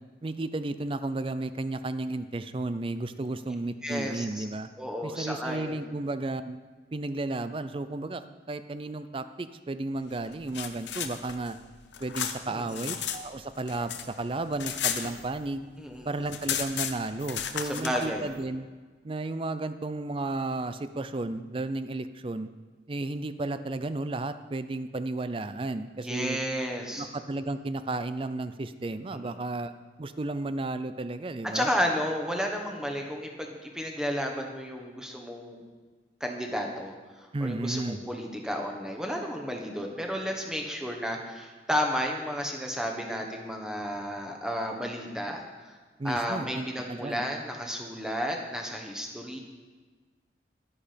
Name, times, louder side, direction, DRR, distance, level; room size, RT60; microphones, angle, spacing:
voice 1, 0.2-4.7 5.0-6.6 6.9-8.2 8.5-11.6 12.0-15.7 16.0-18.7 19.0-22.5 22.9-26.4 27.0-29.7 30.0-31.7 37.3-38.0 46.0-47.2, right 2 dB, 30° right, 12 dB, 0.4 m, -33 dB
voice 2, 3.8-4.4 4.8-5.8 12.5-12.9 15.8-16.1 17.6-18.3 26.0-27.1 29.1-29.4 31.4-35.6 36.2-45.4 45.6-45.8 46.0-49.4, equal, 5° right, 2 dB, 1.3 m, -32 dB
sound 1, 10.3-13.2 13.5-15.7 15.9-16.0 16.2-18.1, left 9 dB, 85° left, 0.8 m, -33 dB
11.0 x 9.9 x 5.2 m, 1.4 s
head